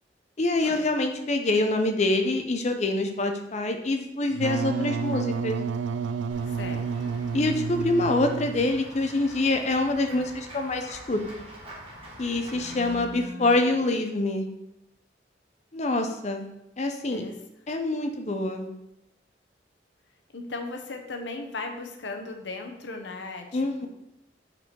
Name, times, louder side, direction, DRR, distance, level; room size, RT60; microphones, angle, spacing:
voice 1, 0.4-5.6 7.3-11.2 12.2-14.4 15.7-16.5 16.8-17.2 17.7-18.7 23.5-23.9, left 2 dB, 40° left, 5 dB, 0.6 m, -25 dB
Wind instrument woodwind instrument, 4.3-8.9, right 5 dB, 90° right, 0.3 m, -30 dB
Run / Walk footsteps / Bell, 6.3-13.0, right 1 dB, 30° right, 1.5 m, -45 dB
voice 2, 6.5-7.2 12.5-13.8 17.1-17.4 20.3-23.9, left 3 dB, 75° left, 4 dB, 0.8 m, -38 dB
5.3 x 4.5 x 4.5 m, 0.87 s
head